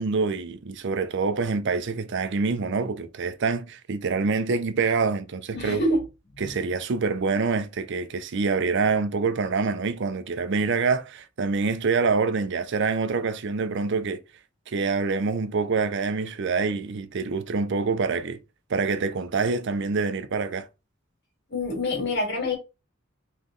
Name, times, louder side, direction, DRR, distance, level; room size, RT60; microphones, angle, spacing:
voice 1, 0.0-5.9 6.4-14.2 14.7-18.4 18.7-20.7, right 4 dB, 60° right, 0.5 m, -26 dB
voice 2, 5.5-6.0 6.4-6.7 21.5-22.6, left 1 dB, 55° left, 2.0 m, -26 dB
3.6 x 3.2 x 3.8 m
head